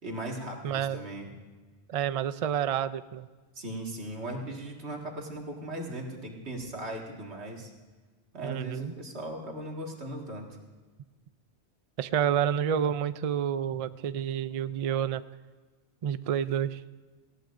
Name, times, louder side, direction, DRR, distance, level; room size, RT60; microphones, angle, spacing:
voice 1, 0.0-1.3 3.5-7.7 8.3-10.5, right 1 dB, 80° right, 0 dB, 2.2 m, -38 dB
voice 2, 0.6-1.0 1.9-3.3 8.4-8.9 12.0-15.2 16.0-16.8, right 9 dB, 60° right, 14 dB, 0.3 m, -29 dB
19.0 x 16.5 x 2.6 m, 1.4 s
omnidirectional pair, 1.1 m